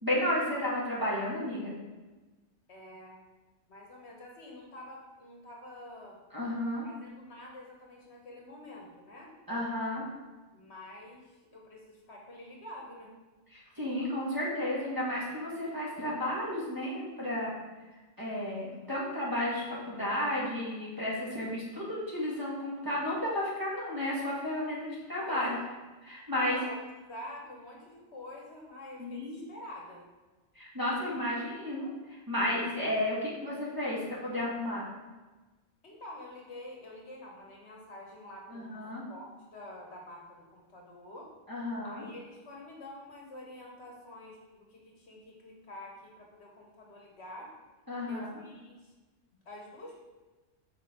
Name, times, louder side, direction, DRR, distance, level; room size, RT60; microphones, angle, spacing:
voice 1, 0.0-1.7 6.3-6.9 9.5-10.0 13.5-17.5 18.2-25.6 26.0-26.6 29.0-29.4 30.5-34.9 38.5-39.0 41.5-42.1 47.9-48.3, left 1 dB, 15° right, -7 dB, 1.7 m, -33 dB
voice 2, 2.7-3.2 3.7-6.2 6.8-9.3 10.5-13.1 25.2-25.7 26.3-30.0 35.8-41.3 41.8-47.5 48.1-48.9 49.3-50.0, left 1 dB, 55° left, -1 dB, 1.5 m, -47 dB
6.1 x 5.0 x 4.4 m, 1.2 s
omnidirectional pair, 1.4 m